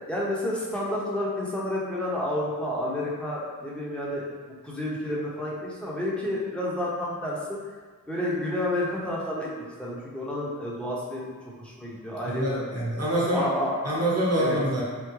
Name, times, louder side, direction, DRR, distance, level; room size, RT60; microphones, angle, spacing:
voice 1, 0.0-4.3 4.6-7.7 8.1-11.3 11.6-12.6 13.1-14.0 14.4-14.6, left 1 dB, 5° left, -6 dB, 0.9 m, -30 dB
voice 2, 12.3-13.5 13.8-14.8, right 1 dB, 45° right, -5 dB, 1.1 m, -25 dB
3.6 x 2.2 x 3.1 m, 1.5 s
cardioid pair, 50°, 33 cm